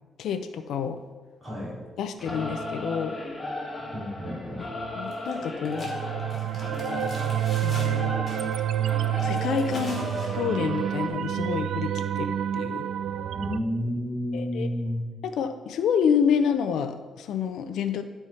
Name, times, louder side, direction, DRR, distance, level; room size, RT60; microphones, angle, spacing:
voice 1, 0.2-1.0 2.0-3.2 5.0-5.9 7.6-8.2 9.2-12.9 14.3-14.7 15.2-18.0, left 7 dB, 80° left, 9 dB, 0.5 m, -28 dB
voice 2, 1.4-1.8 3.9-4.7 13.3-15.0, equal, 10° right, -5 dB, 3.0 m, -30 dB
Singing / Musical instrument, 2.2-11.1, left 1 dB, 15° left, 1.3 m, -35 dB
sound 1, 5.1-5.4 5.6-8.0 8.3-8.6 9.2-10.3, left 2 dB, 30° left, 2.6 m, -43 dB
sound 2, 5.7-13.6, right 11 dB, 75° right, 0.3 m, -28 dB
11.5 x 4.5 x 5.6 m, 1.4 s
cardioid pair, 150°, 0 cm